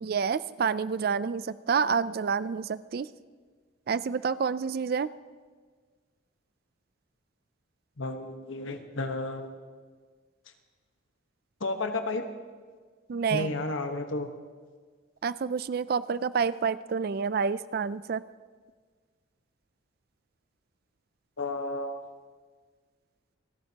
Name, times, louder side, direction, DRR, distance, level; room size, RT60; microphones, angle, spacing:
voice 1, 0.0-3.1 3.9-5.1 13.1-13.5 15.2-18.2, right 6 dB, 50° right, 16 dB, 0.3 m, -28 dB
voice 2, 8.0-9.5 11.6-12.2 13.3-14.3 21.4-22.1, left 2 dB, 80° left, 6 dB, 1.2 m, -32 dB
28.5 x 12.0 x 2.9 m, 1.5 s
head